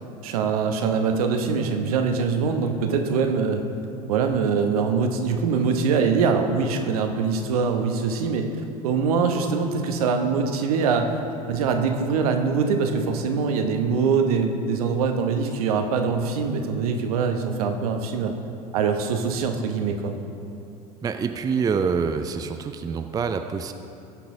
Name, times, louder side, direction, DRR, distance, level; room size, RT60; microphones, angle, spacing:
voice 1, 0.2-3.6 4.1-8.5 8.8-11.2 11.5-18.3 18.7-20.1, right 5 dB, 65° right, 5 dB, 0.9 m, -23 dB
voice 2, 21.0-23.7, right 5 dB, 20° right, 7 dB, 0.4 m, -26 dB
15.5 x 5.9 x 3.7 m, 2.7 s
figure-of-eight pair, 75°, 20 cm